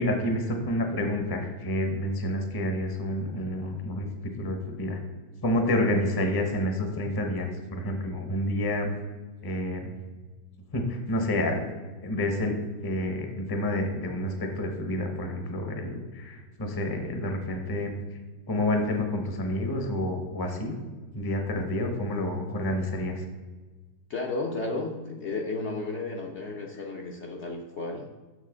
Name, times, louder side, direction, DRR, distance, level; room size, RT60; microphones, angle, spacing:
voice 1, 0.0-4.0 4.4-5.0 5.4-8.9 9.4-9.9 10.7-11.6 12.0-12.6 12.8-17.9 18.5-20.7 21.1-23.2, left 1 dB, 20° left, 4 dB, 0.7 m, -29 dB
voice 2, 24.1-28.1, left 3 dB, 55° left, 0 dB, 0.9 m, -33 dB
6.6 x 6.5 x 3.8 m, 1.3 s
omnidirectional pair, 1.8 m